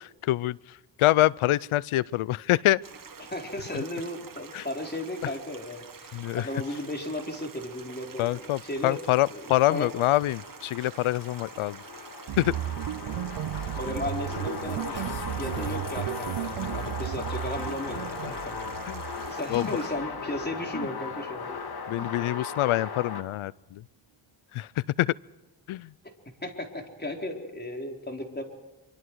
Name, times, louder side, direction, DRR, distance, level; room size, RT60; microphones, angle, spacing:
voice 1, 0.2-2.8 4.5-4.6 6.1-6.5 8.2-11.8 12.4-12.6 18.2-18.3 18.9-19.0 19.5-19.7 21.9-23.8 24.5-25.1 25.7-25.9, left 15 dB, 90° left, 23 dB, 0.6 m, -26 dB
Stream, 2.8-19.9, right 6 dB, 45° right, 1.8 m, -47 dB
voice 2, 3.3-9.0 9.3-9.9 13.7-15.1 15.4-18.7 19.3-21.6 26.4-28.4, left 1 dB, 20° left, 3 dB, 4.1 m, -35 dB
sound 1, 8.3-23.2, left 5 dB, 50° left, 2.1 m, -38 dB
sound 2, 12.3-21.7, right 13 dB, 60° right, 0.6 m, -35 dB
25.0 x 24.0 x 4.7 m, 1.1 s
cardioid pair, 75°, 48 cm